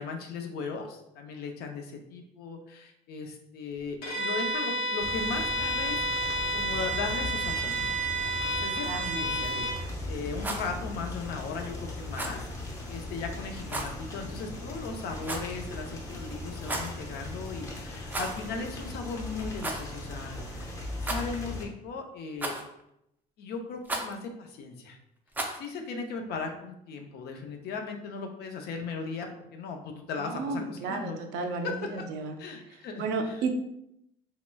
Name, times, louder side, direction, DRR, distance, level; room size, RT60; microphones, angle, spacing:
voice 1, 0.0-7.8 8.6-20.7 21.0-22.6 23.4-25.0 25.6-31.2 31.6-32.0 32.4-33.4, left 4 dB, 70° left, 4 dB, 0.6 m, -37 dB
Bowed string instrument, 4.0-9.8, right 1 dB, 90° left, 1.0 m, -30 dB
sound 1, 5.0-21.7, left 1 dB, 20° left, 0.7 m, -39 dB
voice 2, 8.8-9.7 30.2-32.3 33.0-33.5, right 4 dB, 85° right, 5 dB, 0.5 m, -33 dB
Rattle, 10.3-10.7 12.1-12.4 13.7-13.9 15.2-15.6 16.6-17.0 18.1-18.5 18.8-18.9 19.6-19.9 21.0-21.5 22.4-22.8 23.8-24.1 25.3-25.7, right 2 dB, 10° right, 0.4 m, -34 dB
3.1 x 2.8 x 2.2 m, 0.79 s
cardioid pair, 110°, 17 cm